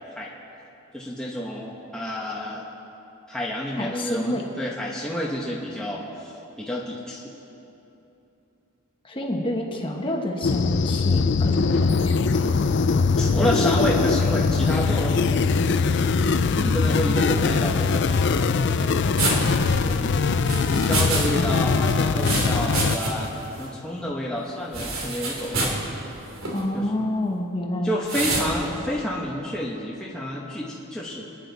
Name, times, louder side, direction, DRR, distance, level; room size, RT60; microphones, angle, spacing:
voice 1, 0.9-2.6 3.3-7.3 13.2-15.4 16.6-20.4 20.7-25.8 26.7-26.8 27.8-31.3, equal, 5° left, -5 dB, 1.0 m, -30 dB
voice 2, 3.8-4.5 9.0-12.5 16.4-17.2 26.5-28.0, left 1 dB, 25° left, 1 dB, 1.3 m, -29 dB
sound 1, 10.4-23.0, left 4 dB, 50° left, 0.4 m, -21 dB
sound 2, 19.2-21.3 21.5-23.3 23.6-23.7 24.7-25.8 26.4-26.6 28.1-28.5, right 2 dB, 70° right, 2.9 m, -27 dB
26.0 x 10.0 x 4.1 m, 2.9 s
head